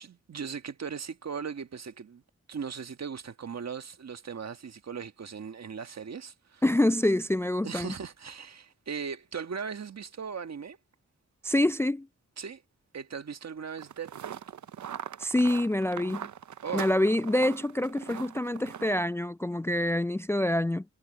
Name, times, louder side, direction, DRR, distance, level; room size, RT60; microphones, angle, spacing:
voice 1, 0.0-2.2 2.5-6.6 7.6-10.8 12.4-12.6 12.9-14.4 16.6-16.9, right 6 dB, 65° right, 1.6 m, -38 dB
voice 2, 6.6-7.9 11.4-12.1 15.2-16.3 16.7-20.8, left 1 dB, 10° left, 0.4 m, -26 dB
sound 1, 13.8-19.0, right 9 dB, 80° right, 0.8 m, -41 dB
cardioid pair, 50°, 29 cm